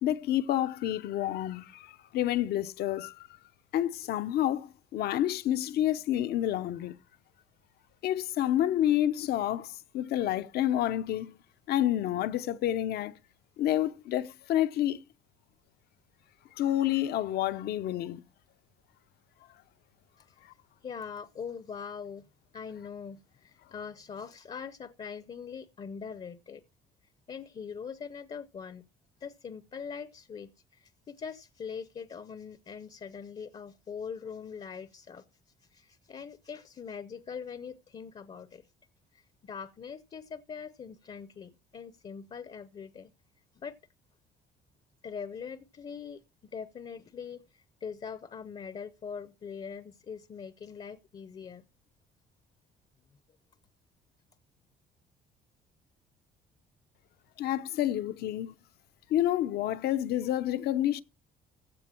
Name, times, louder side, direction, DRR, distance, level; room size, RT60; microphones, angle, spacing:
voice 1, 0.0-3.1 3.7-6.9 8.0-11.4 11.7-13.1 13.6-15.0 16.6-18.2 57.4-58.5 59.1-61.0, left 12 dB, 70° left, 0.8 m, -29 dB
voice 2, 20.8-22.3 22.5-26.6 27.3-28.8 29.2-35.2 35.7-38.7 39.1-43.1 43.5-43.8 45.0-46.2 46.5-51.6, left 6 dB, 35° left, 0.7 m, -42 dB
15.5 x 5.3 x 4.4 m
cardioid pair, 110°, 17 cm